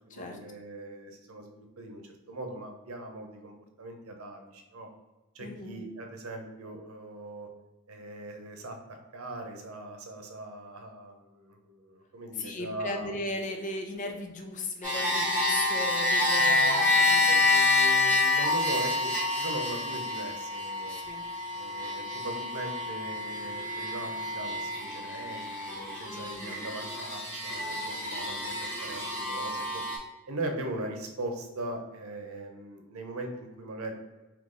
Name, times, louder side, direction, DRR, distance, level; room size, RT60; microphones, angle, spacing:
voice 1, 0.1-4.9 5.3-7.5 7.9-13.1 16.5-21.0 21.5-29.8 30.3-33.9, right 1 dB, 90° right, 4 dB, 0.8 m, -40 dB
voice 2, 5.4-5.8 12.3-17.4 20.9-21.3 26.1-26.6, left 2 dB, 35° left, 3 dB, 0.5 m, -37 dB
sound 1, 14.8-30.0, left 2 dB, 10° left, 1.4 m, -28 dB
3.8 x 2.9 x 3.7 m, 1.1 s
head